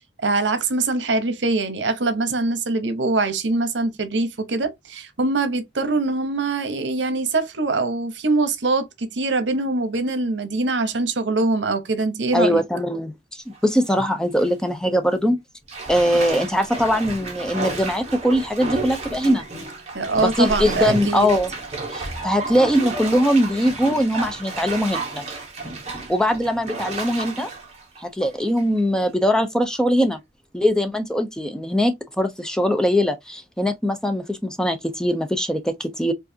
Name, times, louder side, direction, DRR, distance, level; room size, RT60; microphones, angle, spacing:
voice 1, 0.2-12.6 19.9-21.3, right 3 dB, 80° right, 0.9 m, -23 dB
voice 2, 12.3-15.4 15.9-19.4 20.2-21.5 21.9-25.2 26.1-27.5 28.0-30.2 30.5-36.1, equal, 5° left, 0.5 m, -21 dB
Bathtub (filling or washing), 13.5-13.9 14.4-14.5 15.7-28.8 29.2-29.3, right 3 dB, 35° right, 1.2 m, -32 dB
4.7 x 2.5 x 2.7 m
head